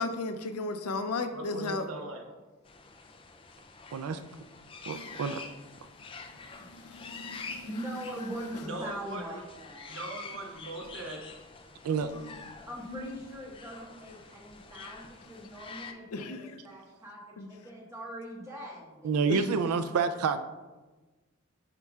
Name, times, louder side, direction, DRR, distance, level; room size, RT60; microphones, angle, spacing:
voice 1, 0.0-1.8 4.9-5.1 6.8-7.7 12.2-12.3 12.9-13.1 16.1-16.6 17.4-17.5 19.3-19.4, left 3 dB, 90° left, 8 dB, 0.5 m, -35 dB
voice 2, 1.3-2.2 8.6-9.4 9.9-11.3, right 1 dB, 70° right, 1 dB, 1.1 m, -40 dB
sound 1, 2.6-15.9, left 4 dB, 25° left, 0.3 m, -47 dB
voice 3, 4.9-5.4 11.8-12.1 19.0-20.4, right 5 dB, 90° right, 9 dB, 0.4 m, -28 dB
voice 4, 7.7-10.0 12.7-19.2, equal, 15° right, -4 dB, 1.4 m, -42 dB
8.3 x 5.5 x 2.4 m, 1.2 s
head